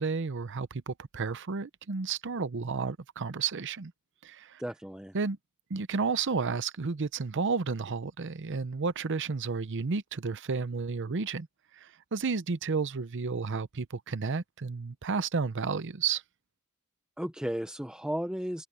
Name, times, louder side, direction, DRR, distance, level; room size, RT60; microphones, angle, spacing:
voice 1, 0.0-3.9 4.2-4.6 5.1-5.4 5.7-11.5 11.7-16.2, right 4 dB, 60° right, 0.7 m, -32 dB
voice 2, 4.6-5.2 17.2-18.6, equal, 5° right, 0.7 m, -34 dB
head